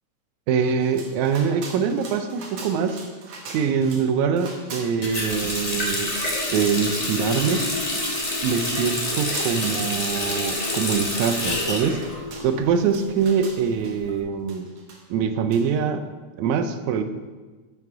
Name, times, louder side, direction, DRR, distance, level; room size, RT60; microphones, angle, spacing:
voice 1, 0.5-3.0 3.5-6.1 6.5-7.7 8.4-12.0 12.4-14.7 15.1-16.0 16.4-17.0, right 6 dB, 75° right, 9 dB, 1.9 m, -24 dB
sound 1, 0.6-4.1 4.3-5.7 6.1-6.8 7.3-7.4 7.9-8.0 8.3-10.7 11.0-11.1 11.4-14.0 14.5-15.2 15.5-15.6, right 3 dB, 60° right, 2.2 m, -42 dB
Water tap faucet, 5.0-12.8 13.1-14.1, left 1 dB, 80° left, 0.3 m, -27 dB
10.5 x 5.8 x 4.8 m, 1.3 s
omnidirectional pair, 3.6 m